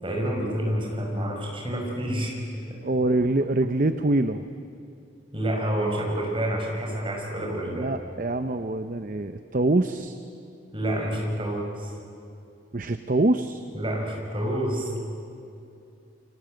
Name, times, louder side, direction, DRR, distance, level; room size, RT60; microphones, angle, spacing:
voice 1, 0.0-2.4 5.3-7.9 10.7-11.9 13.7-14.9, right 1 dB, 25° right, -1 dB, 5.7 m, -28 dB
voice 2, 2.8-4.5 7.7-10.2 12.7-13.6, right 2 dB, 45° right, 9 dB, 0.7 m, -24 dB
29.0 x 25.5 x 7.8 m, 2.6 s
head